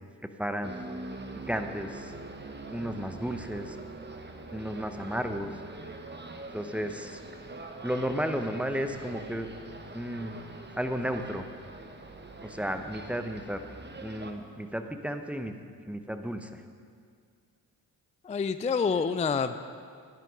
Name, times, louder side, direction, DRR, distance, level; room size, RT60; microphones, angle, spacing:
voice 1, 0.2-0.7 1.5-2.2 2.7-3.8 4.5-5.5 6.5-7.2 7.8-10.4 10.8-11.5 12.4-13.6 14.0-15.6 15.9-16.6, equal, 5° right, 7 dB, 0.9 m, -33 dB
sound 1, 0.6-14.3, right 2 dB, 20° right, 1.3 m, -43 dB
voice 2, 18.2-19.7, left 5 dB, 15° left, 11 dB, 0.4 m, -27 dB
11.0 x 10.5 x 5.3 m, 2.2 s
hypercardioid pair, 40°, 47 cm